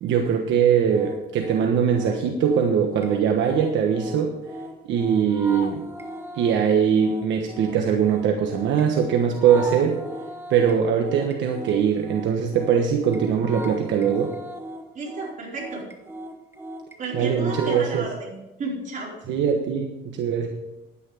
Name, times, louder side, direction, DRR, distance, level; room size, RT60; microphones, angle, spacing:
voice 1, 0.0-4.3 4.9-5.8 6.4-10.0 10.5-14.3 17.1-18.0 19.3-20.5, right 7 dB, 75° right, 3 dB, 1.2 m, -21 dB
sound 1, 0.9-18.0, equal, 10° right, 1.4 m, -38 dB
voice 2, 14.9-15.8 17.0-18.3 18.6-19.3, right 3 dB, 40° right, -3 dB, 4.6 m, -33 dB
10.5 x 9.8 x 5.0 m, 0.97 s
cardioid pair, 115°, 19 cm